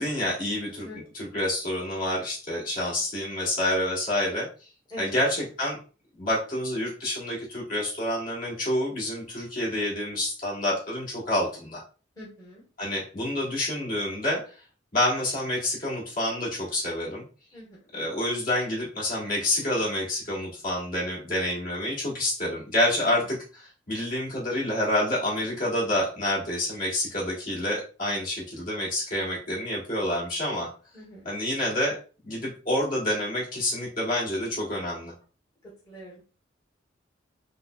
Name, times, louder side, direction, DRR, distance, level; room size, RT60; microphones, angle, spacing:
voice 1, 0.0-0.9 1.1-4.5 5.0-5.8 6.2-11.8 12.8-14.5 14.9-17.2 17.9-30.7 31.2-32.0 32.2-35.1, left 1 dB, 45° left, -5 dB, 1.8 m, -28 dB
voice 2, 12.2-12.6 17.5-17.8 30.9-31.3 35.8-36.2, equal, 20° left, -6 dB, 1.3 m, -43 dB
5.4 x 2.1 x 2.4 m, 0.35 s
head